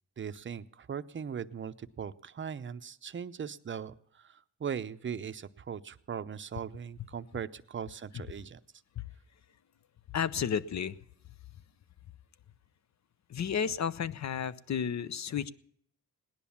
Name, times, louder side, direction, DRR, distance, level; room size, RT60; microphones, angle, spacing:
voice 1, 0.2-8.6, right 7 dB, 35° right, 11 dB, 0.6 m, -39 dB
voice 2, 10.1-11.0 13.3-15.5, left 8 dB, 50° left, 17 dB, 0.7 m, -32 dB
18.0 x 10.5 x 7.1 m, 0.67 s
cardioid pair, 100°, 36 cm